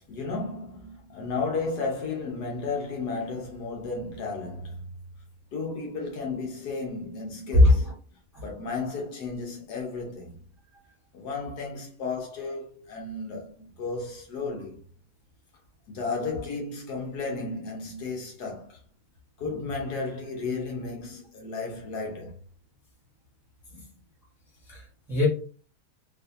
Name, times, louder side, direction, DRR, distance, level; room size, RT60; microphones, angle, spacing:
voice 1, 0.1-4.8 5.5-7.9 8.4-10.4 11.1-14.8 15.9-18.8 19.4-22.3, left 3 dB, 75° left, 1.5 m, -33 dB
voice 2, 7.5-7.9 8.3-8.4 16.5-16.6 19.4-19.7 23.7-23.8 24.6-25.3, left 2 dB, ahead, 0.9 m, -22 dB
3.9 x 2.6 x 2.6 m
omnidirectional pair, 1.8 m